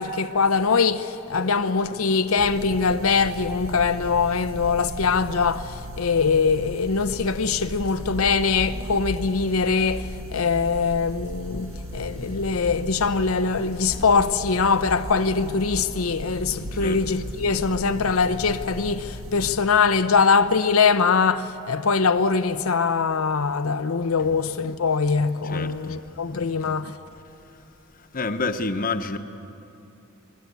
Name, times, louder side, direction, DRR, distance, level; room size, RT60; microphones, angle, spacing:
voice 1, 0.0-27.0, left 5 dB, 90° left, 0.7 m, -22 dB
sound 1, 2.4-19.5, equal, 75° right, 1.6 m, -36 dB
voice 2, 25.4-26.0 26.3-26.8 28.1-29.2, left 3 dB, 40° left, 1.0 m, -29 dB
25.5 x 21.0 x 8.2 m
head